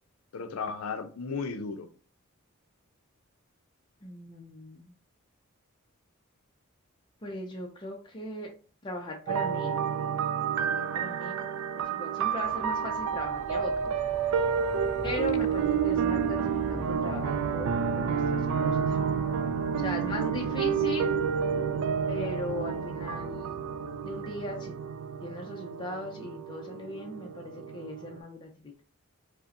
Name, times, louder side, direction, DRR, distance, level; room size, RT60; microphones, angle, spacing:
voice 1, 0.3-1.9 20.2-20.6, left 5 dB, 80° left, 0.5 m, -35 dB
voice 2, 4.0-4.9 7.2-8.5 8.8-9.8 10.6-13.9 15.0-19.0 19.8-21.1 22.1-23.6 24.0-24.8 25.2-28.8, left 1 dB, 20° left, 0.4 m, -38 dB
sound 1, 9.3-28.2, right 7 dB, 90° right, 0.3 m, -30 dB
sound 2, 12.4-24.9, equal, 35° right, 0.7 m, -42 dB
5.2 x 2.1 x 2.5 m
head